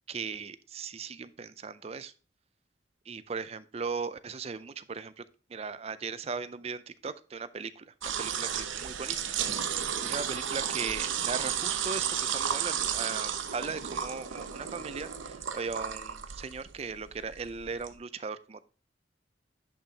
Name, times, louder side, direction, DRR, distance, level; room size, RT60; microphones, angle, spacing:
voice 1, 0.1-2.1 3.1-5.2 5.5-9.2 9.5-18.6, right 5 dB, 30° right, 0.4 m, -38 dB
sound 1, 8.0-17.9, right 8 dB, 80° right, 0.8 m, -33 dB
10.0 x 6.0 x 2.8 m
head